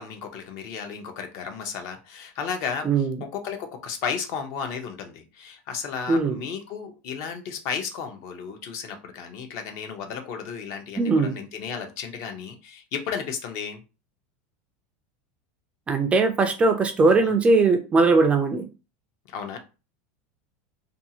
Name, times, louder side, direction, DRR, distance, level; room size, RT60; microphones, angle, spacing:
voice 1, 0.0-2.9 3.2-13.8 17.1-17.3 19.3-19.6, left 6 dB, 50° left, 0.7 m, -34 dB
voice 2, 2.8-3.2 6.1-6.3 11.0-11.4 15.9-18.7, right 3 dB, 15° right, 0.3 m, -20 dB
2.6 x 2.3 x 2.7 m
supercardioid pair, 145°, 7 cm